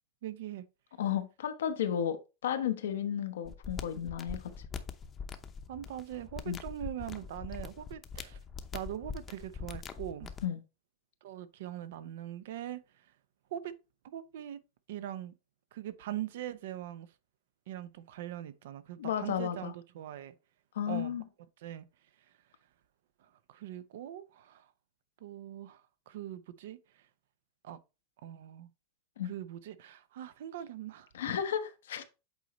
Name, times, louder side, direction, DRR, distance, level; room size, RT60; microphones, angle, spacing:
voice 1, 0.2-0.7 5.7-8.4 8.7-10.3 11.2-13.0 13.5-13.7 14.1-14.6 14.9-15.3 15.7-17.1 17.7-20.3 20.9-21.2 21.6-21.9 23.2-24.7 25.2-27.0 27.6-27.8 28.2-28.7 29.2-31.1, right 11 dB, 75° right, 0.7 m, -42 dB
voice 2, 1.0-4.5 6.5-6.6 10.4-10.6 19.0-19.7 20.7-21.2 29.2-29.3 31.1-32.0, left 9 dB, 90° left, 0.9 m, -33 dB
sound 1, 3.5-10.5, left 6 dB, 25° left, 0.7 m, -43 dB
8.1 x 4.0 x 3.0 m
supercardioid pair, 130°, 0 cm